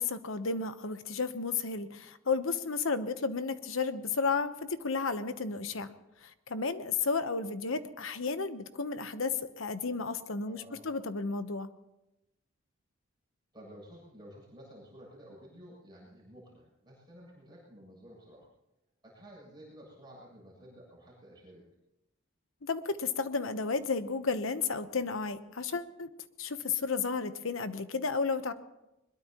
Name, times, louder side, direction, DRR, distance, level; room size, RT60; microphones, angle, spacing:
voice 1, 0.0-11.7 22.6-26.1 26.4-28.5, left 4 dB, 80° left, 11 dB, 1.0 m, -33 dB
voice 2, 10.4-11.0 13.5-18.5 19.0-21.6, equal, 20° right, -3 dB, 7.5 m, -52 dB
22.0 x 21.5 x 3.0 m, 0.94 s
head